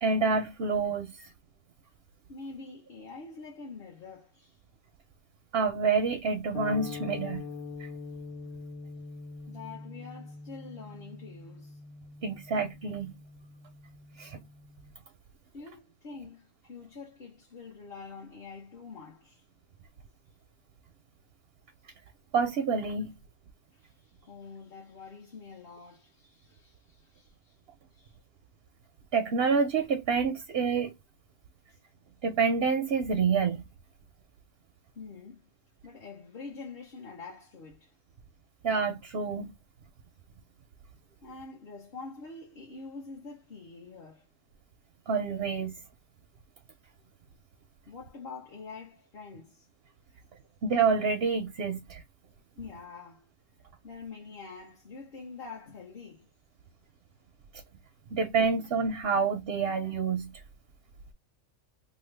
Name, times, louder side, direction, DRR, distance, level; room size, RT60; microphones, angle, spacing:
voice 1, 0.0-1.1 5.5-7.4 12.2-13.1 14.2-14.4 22.3-23.2 29.1-30.9 32.2-33.6 38.6-39.5 45.1-45.7 50.6-52.0 58.1-60.3, right 5 dB, 60° right, 0.7 m, -27 dB
voice 2, 2.3-4.6 9.5-11.8 15.5-19.4 23.7-27.6 27.9-28.2 31.7-31.8 34.9-35.5 35.8-38.0 41.2-44.3 47.9-49.7 52.6-53.3 53.8-56.3, left 4 dB, 45° left, 1.3 m, -46 dB
sound 1, 6.5-14.9, left 4 dB, 80° left, 1.3 m, -44 dB
3.1 x 2.3 x 3.2 m
omnidirectional pair, 1.4 m